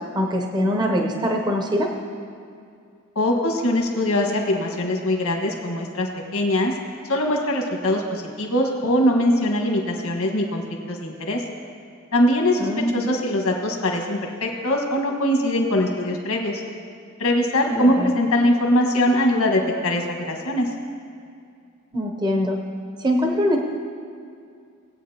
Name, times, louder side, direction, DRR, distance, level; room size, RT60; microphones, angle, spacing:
voice 1, 0.1-1.9 12.6-13.0 17.7-18.1 21.9-22.6 23.0-23.6, equal, 20° right, 1 dB, 0.8 m, -23 dB
voice 2, 3.1-6.7 7.1-10.6 10.9-11.4 12.1-16.6 17.2-20.7, left 1 dB, 80° left, 1 dB, 1.6 m, -22 dB
19.5 x 8.5 x 2.9 m, 2.3 s
head